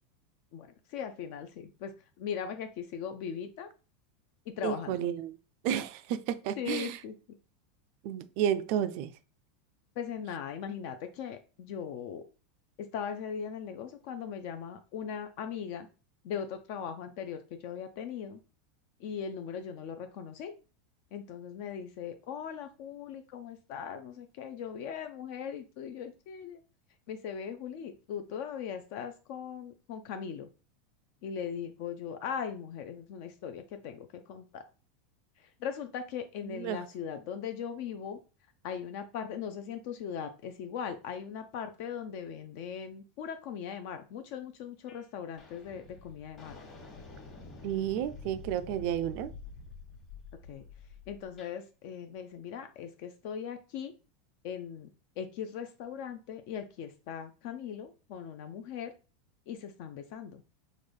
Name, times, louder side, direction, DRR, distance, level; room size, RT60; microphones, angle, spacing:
voice 1, 0.5-1.9 2.2-3.7 4.5-5.1 6.6-7.4 10.0-12.2 12.9-15.9 16.2-18.4 19.0-20.5 21.1-26.6 27.1-30.5 31.2-34.6 35.4-38.2 38.6-46.6 50.5-50.6 51.1-53.9 54.4-54.9 55.2-58.9 59.5-60.4, left 7 dB, 60° left, 0.4 m, -39 dB
voice 2, 4.6-5.4 5.6-7.0 8.0-9.1 36.5-36.8 47.6-49.3, right 10 dB, 60° right, 0.3 m, -31 dB
sound 1, 44.9-45.1 45.4-51.6, left 4 dB, 35° left, 1.3 m, -48 dB
3.7 x 2.1 x 3.3 m
supercardioid pair, 130°, 0 cm